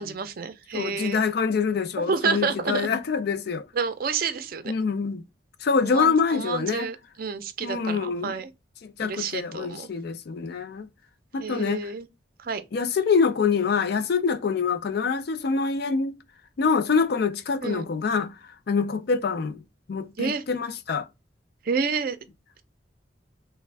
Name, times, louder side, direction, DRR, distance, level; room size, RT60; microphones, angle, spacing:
voice 1, 0.0-1.2 2.0-2.9 3.7-4.7 5.8-8.5 9.0-9.9 11.4-12.1 12.4-12.6 17.6-17.8 20.2-20.4 21.6-22.2, right 5 dB, 55° right, 0.5 m, -29 dB
voice 2, 0.7-3.6 4.7-5.2 5.6-6.9 7.6-8.3 8.8-10.9 11.3-11.9 12.7-16.2 16.6-18.3 18.7-19.6 19.9-21.1, left 5 dB, 60° left, 0.4 m, -25 dB
3.4 x 2.1 x 3.3 m
head